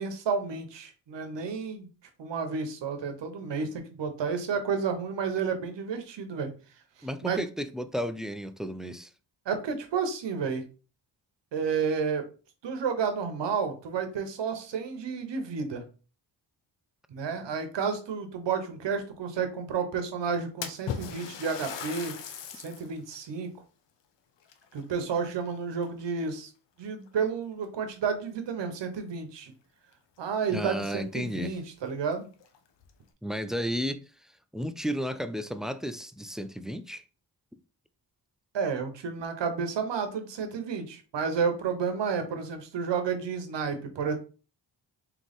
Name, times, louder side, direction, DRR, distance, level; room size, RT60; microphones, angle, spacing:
voice 1, 0.0-1.9 2.2-6.5 7.2-7.4 9.5-10.6 11.5-12.2 12.6-15.8 17.1-22.1 22.5-23.5 24.7-26.5 26.8-29.5 30.2-32.3 38.5-44.1, right 6 dB, 75° right, 1.0 m, -31 dB
voice 2, 7.0-9.1 30.5-31.5 33.2-34.0 34.5-37.0, equal, ahead, 0.3 m, -33 dB
Splash splatter, 20.6-22.9 23.4-23.5 24.4-25.5 25.8-26.3 27.1-27.2 27.6-27.7 29.9-30.0 30.3-30.4 31.0-31.1 31.5-31.6 32.3-32.9, left 7 dB, 80° left, 0.8 m, -38 dB
3.8 x 3.2 x 3.5 m
cardioid pair, 70°, 43 cm